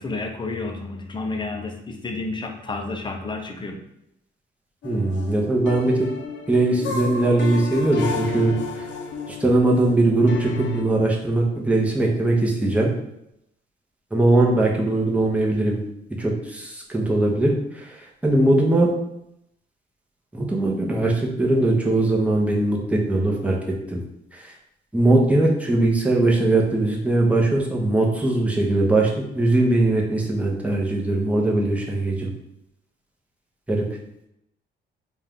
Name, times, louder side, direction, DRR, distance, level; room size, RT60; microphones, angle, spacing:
voice 1, 0.0-3.8, left 3 dB, 25° left, 3 dB, 0.7 m, -30 dB
sound 1, 4.8-10.8, left 3 dB, 70° left, 0.7 m, -32 dB
voice 2, 4.8-5.9 6.5-8.5 9.3-12.9 14.1-15.8 16.2-18.9 20.3-23.6 23.9-24.0 24.3-24.5 24.9-32.3 33.7-33.8, right 2 dB, 5° right, -2 dB, 1.0 m, -20 dB
4.1 x 2.5 x 3.6 m, 0.81 s
cardioid pair, 90°, 20 cm